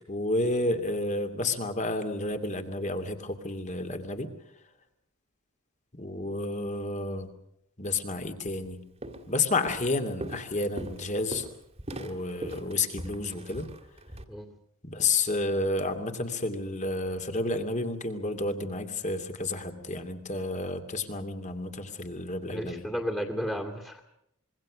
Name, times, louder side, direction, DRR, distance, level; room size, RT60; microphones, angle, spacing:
voice 1, 0.1-4.3 5.9-7.3 7.8-8.8 9.3-11.5 11.9-13.7 14.8-22.8, left 2 dB, 35° left, 7 dB, 2.6 m, -30 dB
Walk footsteps, 8.5-8.7 9.0-9.3 9.6-14.2, right 1 dB, 30° right, 2.2 m, -40 dB
voice 2, 22.5-24.0, equal, 5° left, 3 dB, 2.4 m, -33 dB
26.0 x 23.0 x 6.3 m, 0.77 s
head